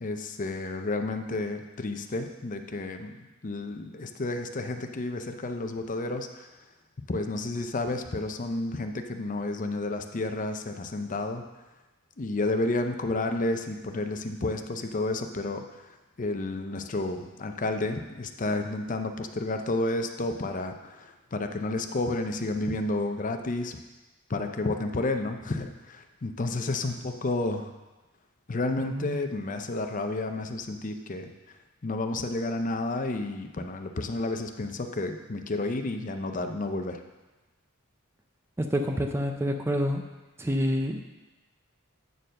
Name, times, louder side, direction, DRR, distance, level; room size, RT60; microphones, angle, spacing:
voice 1, 0.0-3.2 3.4-6.5 7.1-11.5 12.2-23.8 24.3-27.7 28.5-31.3 31.8-37.0, left 2 dB, 35° left, 6 dB, 0.6 m, -31 dB
voice 2, 28.8-29.2 38.6-40.1 40.4-41.0, equal, 10° right, 5 dB, 0.4 m, -28 dB
9.0 x 4.5 x 6.4 m, 1.1 s
head